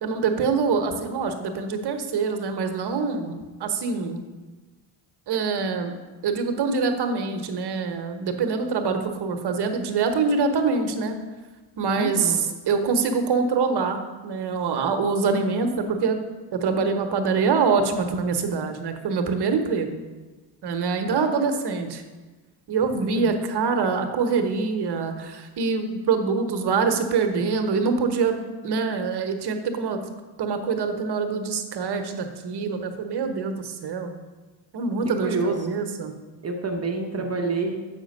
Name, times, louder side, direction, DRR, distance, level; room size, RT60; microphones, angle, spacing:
voice 1, 0.0-4.2 5.3-5.9 6.2-11.2 11.8-12.4 12.7-16.2 16.5-20.0 20.6-22.0 22.7-30.0 30.4-34.1 34.7-36.1 37.2-37.3, right 5 dB, 50° right, 6 dB, 1.1 m, -25 dB
voice 2, 11.9-12.4 21.1-21.4 23.1-23.3 35.2-35.7 36.4-37.8, right 3 dB, 30° right, 2 dB, 0.9 m, -28 dB
7.1 x 5.1 x 5.3 m, 1.3 s
supercardioid pair, 70°, 49 cm